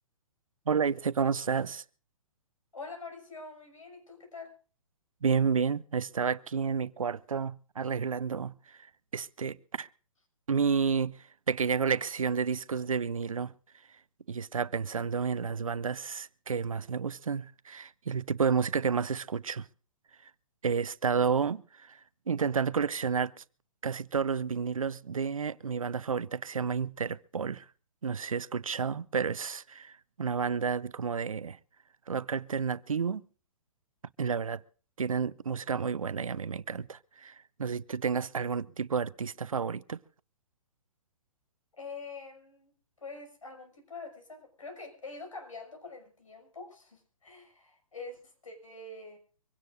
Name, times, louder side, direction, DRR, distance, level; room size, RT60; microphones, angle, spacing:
voice 1, 0.7-1.8 5.2-8.9 9.1-9.9 10.5-13.5 14.3-19.7 20.2-20.3 20.6-22.0 22.3-23.4 23.8-27.7 28.0-31.6 32.1-33.2 34.2-34.6 35.0-40.0, right 6 dB, 80° right, 0.6 m, -31 dB
voice 2, 2.7-4.5 41.7-42.7 43.0-49.2, left 3 dB, 75° left, 6.2 m, -45 dB
24.5 x 17.0 x 2.5 m
figure-of-eight pair, 125°, 17 cm